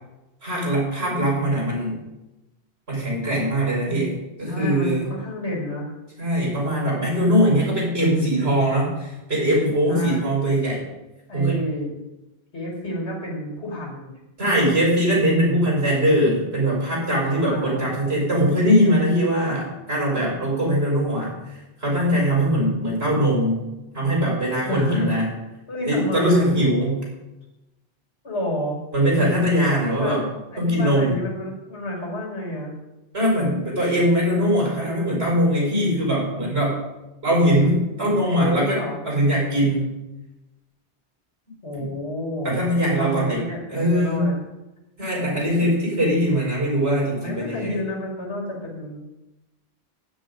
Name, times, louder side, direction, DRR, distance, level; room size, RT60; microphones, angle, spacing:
voice 1, 0.4-2.0 2.9-5.1 6.2-10.8 11.3-11.5 14.4-23.6 23.9-25.3 25.9-27.0 28.9-30.2 30.6-31.2 33.1-36.8 37.2-38.8 39.0-39.9 41.8-41.9 42.4-44.3 45.0-47.7, equal, 70° right, -4 dB, 6.0 m, -21 dB
voice 2, 4.5-5.9 9.9-10.3 11.3-11.9 12.5-14.1 17.4-17.9 24.6-25.1 25.7-26.5 28.2-28.8 29.6-32.7 38.0-39.0 41.6-42.5 42.8-44.4 46.8-49.0, left 1 dB, 85° left, -4 dB, 5.5 m, -30 dB
12.0 x 10.0 x 5.3 m, 0.99 s
omnidirectional pair, 1.1 m